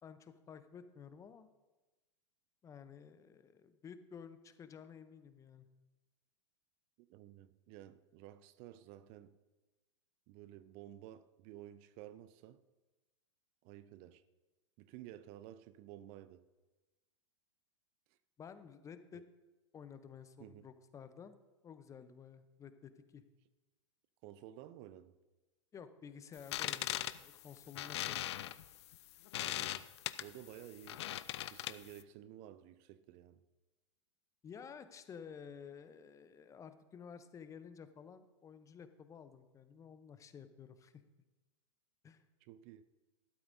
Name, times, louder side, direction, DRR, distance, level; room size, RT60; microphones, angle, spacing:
voice 1, 0.0-1.5 2.6-5.7 18.4-19.2 19.7-21.4 21.6-23.2 25.7-28.3 34.4-40.9 42.0-42.2, left 7 dB, 20° left, 0.7 m, -53 dB
voice 2, 7.0-9.4 10.3-12.6 13.6-14.2 14.8-16.4 20.4-20.7 24.2-25.1 29.4-29.8 30.2-31.1 31.4-33.4 42.4-42.8, right 12 dB, 40° right, 0.5 m, -53 dB
sound 1, 26.4-32.0, left 13 dB, 60° left, 0.5 m, -40 dB
13.0 x 12.0 x 2.6 m
figure-of-eight pair, 105°, 16 cm